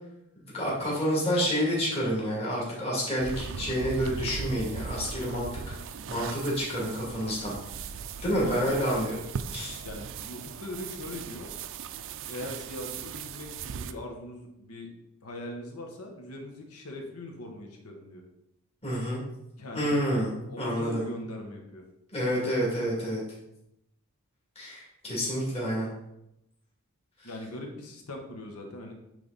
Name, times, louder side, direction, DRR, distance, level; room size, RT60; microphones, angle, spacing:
voice 1, 0.5-5.5 6.1-7.6 8.2-9.2 9.5-9.8 18.8-19.2 19.7-21.0 22.1-23.2 24.6-25.9 27.2-27.3, equal, 25° left, -5 dB, 2.3 m, -29 dB
sound 1, 3.2-13.9, right 6 dB, 60° right, 0.4 m, -39 dB
voice 2, 8.4-9.0 9.8-11.5 12.3-14.9 15.2-18.2 19.6-19.9 20.5-21.8 27.2-28.9, left 1 dB, 80° left, 2 dB, 1.2 m, -40 dB
9.3 x 3.5 x 4.0 m, 0.84 s
head